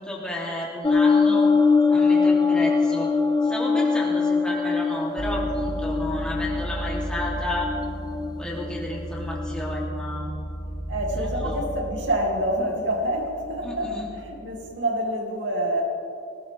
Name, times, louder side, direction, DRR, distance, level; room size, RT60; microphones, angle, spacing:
voice 1, 0.0-1.5 1.9-3.1 3.4-7.7 8.4-10.4 11.2-11.6 13.6-14.0, left 1 dB, 5° left, -4 dB, 3.0 m, -32 dB
sound 1, 0.8-9.9, left 4 dB, 20° left, 0.5 m, -23 dB
sound 2, 5.2-14.7, equal, 45° left, 2.4 m, -34 dB
voice 2, 10.9-13.9 14.2-15.8, right 1 dB, 80° right, 0 dB, 2.8 m, -27 dB
19.0 x 19.0 x 3.5 m, 2.6 s
head